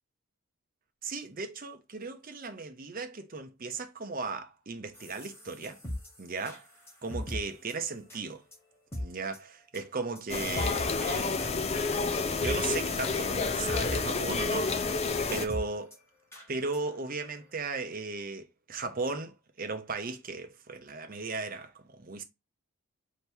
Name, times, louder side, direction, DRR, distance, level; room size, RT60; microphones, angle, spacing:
voice 1, 1.0-5.8 6.2-6.6 7.0-8.4 9.0-11.4 11.9-15.0 15.3-16.0 16.5-22.2, right 3 dB, 40° right, 0.7 m, -36 dB
sound 1, 4.9-7.4 7.7-7.8 8.1-8.2 8.5-8.6 8.9-9.0 9.3-9.4 9.7-9.8 10.1-10.2 10.6-11.0 11.4-11.5 11.8-11.9 12.2-12.7 13.0-13.2 13.4-14.0 14.3-14.4 14.7-14.8 15.1-15.2 15.5-15.6 15.9-16.0 16.3-16.4 16.7-16.8 17.2-17.3, equal, 10° left, 1.3 m, -38 dB
sound 2, 10.3-15.5, left 4 dB, 30° left, 0.4 m, -30 dB
3.4 x 2.9 x 4.4 m
head